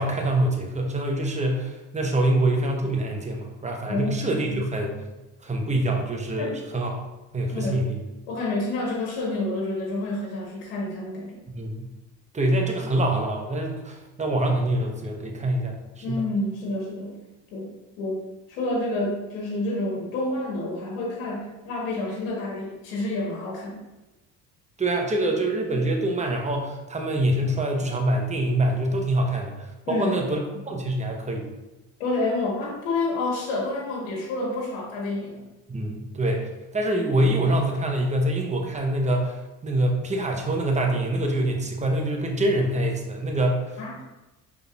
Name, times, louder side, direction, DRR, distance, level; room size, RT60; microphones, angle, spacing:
voice 1, 0.0-5.0 5.4-6.9 7.3-8.0 11.5-11.9 12.3-16.2 24.8-30.4 30.7-31.5 35.7-43.7, right 1 dB, 15° right, 1 dB, 0.9 m, -25 dB
voice 2, 3.9-4.6 6.4-6.5 7.5-7.8 8.3-11.4 16.0-17.2 17.5-18.2 18.5-23.8 29.9-30.2 32.0-35.4 43.8-44.0, left 2 dB, 90° left, -3 dB, 1.3 m, -29 dB
5.5 x 3.6 x 2.4 m, 1.0 s
supercardioid pair, 75°, 40 cm